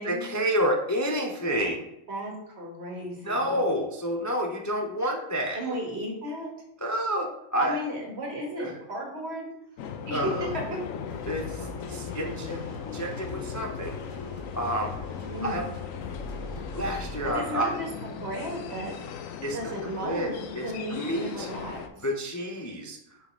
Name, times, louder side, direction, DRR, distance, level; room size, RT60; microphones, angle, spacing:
voice 1, 0.0-1.9 3.2-5.6 6.8-7.8 8.6-8.7 10.1-10.5 11.3-12.6 12.9-13.9 14.5-15.0 15.4-15.7 16.7-17.8 19.4-19.7 20.0-21.5 22.0-23.0, equal, 25° left, 1 dB, 0.4 m, -29 dB
voice 2, 2.1-3.6 5.5-6.5 7.6-9.5 10.1-10.3 10.7-10.8 15.3-15.6 17.2-19.0 19.5-21.8, equal, 55° right, -1 dB, 1.9 m, -34 dB
sound 1, 9.8-21.9, left 7 dB, 90° left, 1.0 m, -38 dB
sound 2, 11.1-17.3, left 1 dB, 30° right, 1.8 m, -42 dB
5.7 x 4.1 x 4.6 m, 0.83 s
omnidirectional pair, 1.3 m